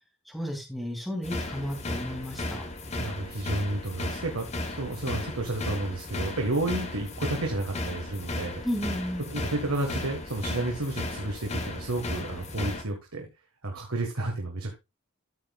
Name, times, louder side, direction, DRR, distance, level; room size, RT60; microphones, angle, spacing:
voice 1, 0.3-2.6 8.6-9.3, equal, ahead, 0 dB, 2.6 m, -33 dB
sound 1, 1.2-12.8, left 2 dB, 30° left, 1.1 m, -35 dB
voice 2, 3.0-8.6 9.3-13.3 13.6-14.7, right 2 dB, 90° right, 2 dB, 1.6 m, -31 dB
13.0 x 7.4 x 2.4 m, 0.23 s
head